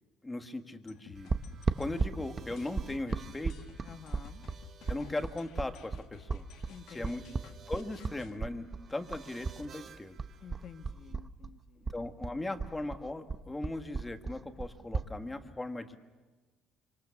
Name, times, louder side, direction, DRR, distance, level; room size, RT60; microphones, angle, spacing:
voice 1, 0.2-1.3 1.8-3.6 4.9-6.5 6.9-7.2 7.7-10.2 11.9-16.0, left 2 dB, 10° left, 8 dB, 1.5 m, -38 dB
sound 1, 0.9-8.4, left 8 dB, 65° left, 1.7 m, -55 dB
sound 2, 1.1-11.1, right 7 dB, 35° right, 1.6 m, -57 dB
sound 3, 1.3-9.6 9.9-11.5 11.8-15.1, right 4 dB, 20° right, 0.8 m, -35 dB
voice 2, 3.8-4.4 6.7-7.5 10.4-11.9, left 7 dB, 35° left, 9 dB, 1.5 m, -51 dB
27.5 x 25.5 x 7.1 m, 1.3 s
cardioid pair, 175°, 0 cm